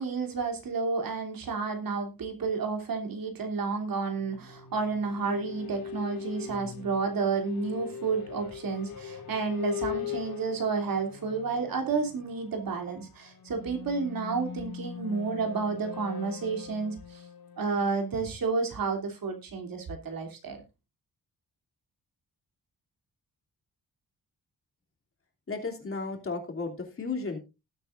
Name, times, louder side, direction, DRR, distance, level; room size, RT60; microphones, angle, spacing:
voice 1, 0.0-17.2 17.6-20.6, right 4 dB, 70° right, 4 dB, 3.1 m, -31 dB
sound 1, 4.1-18.8, left 8 dB, 85° left, 2.6 m, -41 dB
voice 2, 25.5-27.4, left 4 dB, 35° left, 2 dB, 2.9 m, -34 dB
19.0 x 7.9 x 2.5 m, 0.26 s
wide cardioid pair, 165°, 36 cm